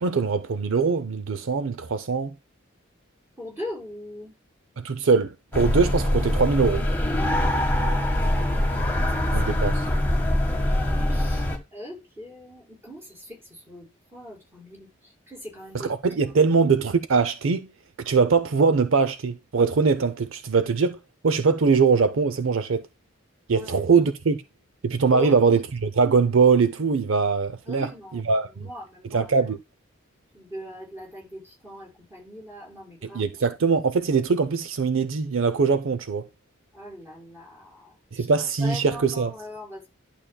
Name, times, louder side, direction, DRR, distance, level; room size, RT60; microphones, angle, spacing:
voice 1, 0.0-2.3 4.8-6.9 9.3-9.7 15.7-17.7 18.0-21.0 21.2-22.8 23.5-24.4 24.8-27.9 28.1-28.5 29.1-29.6 33.1-36.3 38.1-39.3, right 5 dB, 70° right, 0.6 m, -22 dB
voice 2, 3.4-4.4 7.9-8.3 8.9-9.4 9.8-10.0 10.4-16.3 23.5-23.8 25.1-25.6 27.7-29.3 30.3-33.3 36.7-38.3 38.6-39.9, left 1 dB, 10° right, 5.2 m, -41 dB
sound 1, 5.5-11.6, left 1 dB, 10° left, 1.5 m, -23 dB
11.5 x 6.9 x 2.2 m
head